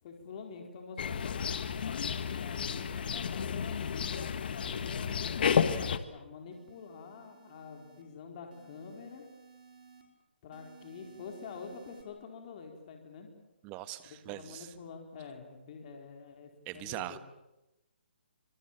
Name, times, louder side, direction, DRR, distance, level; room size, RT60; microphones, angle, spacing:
voice 1, 0.0-1.4 2.2-9.2 10.4-13.3 14.0-17.2, left 5 dB, 40° left, 3 dB, 4.5 m, -47 dB
sound 1, 1.0-6.0, left 7 dB, 60° left, 1.8 m, -32 dB
sound 2, 6.5-8.0 8.5-10.0 10.5-12.0, right 6 dB, 55° right, 5.7 m, -58 dB
voice 2, 13.6-14.7 16.7-17.2, right 15 dB, 25° right, 13 dB, 1.5 m, -41 dB
28.5 x 25.5 x 7.6 m, 0.95 s
hypercardioid pair, 145°, 6 cm